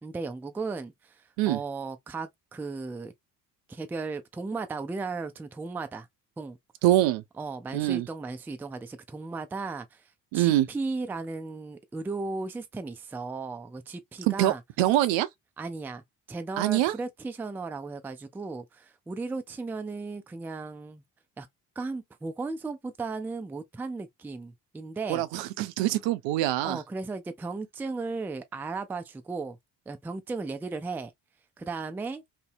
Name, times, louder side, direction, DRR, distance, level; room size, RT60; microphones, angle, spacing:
voice 1, 0.0-1.2 1.5-3.1 3.7-6.1 6.4-6.6 7.4-10.0 10.3-14.6 15.6-16.0 16.3-21.0 21.4-21.5 21.8-25.2 26.6-29.6 29.9-31.1 31.6-32.2, right 3 dB, 5° right, 0.3 m, -35 dB
voice 2, 6.8-7.2 7.7-8.1 10.3-10.7 14.2-15.3 16.6-16.9 25.1-26.8, right 15 dB, 65° right, 0.5 m, -24 dB
2.7 x 2.0 x 2.5 m
hypercardioid pair, 45°, 48 cm